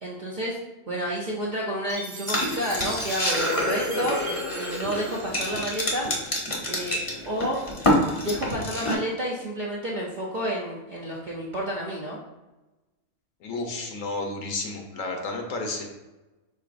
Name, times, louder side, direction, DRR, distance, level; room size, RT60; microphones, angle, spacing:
voice 1, 0.0-0.6 0.9-6.1 6.7-7.0 7.2-7.6 8.2-12.2, equal, 55° right, -4 dB, 0.5 m, -30 dB
Chime, 1.9-6.1, right 3 dB, 70° right, 1.1 m, -40 dB
sound 1, 2.3-8.9, left 1 dB, 30° left, 0.7 m, -27 dB
voice 2, 13.4-15.8, left 2 dB, 70° left, 2 dB, 1.1 m, -31 dB
5.3 x 3.8 x 2.5 m, 1.1 s
omnidirectional pair, 1.5 m